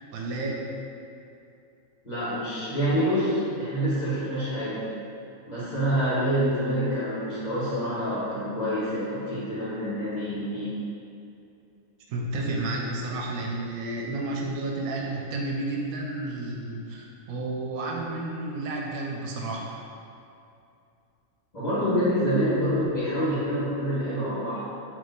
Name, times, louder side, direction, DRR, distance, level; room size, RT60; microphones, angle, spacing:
voice 1, 0.1-0.6 12.1-19.8, right 2 dB, 80° right, -1 dB, 1.0 m, -31 dB
voice 2, 2.0-4.8 5.5-10.7 21.5-24.6, equal, 35° left, -11 dB, 1.1 m, -27 dB
3.7 x 2.7 x 3.9 m, 2.6 s
omnidirectional pair, 1.5 m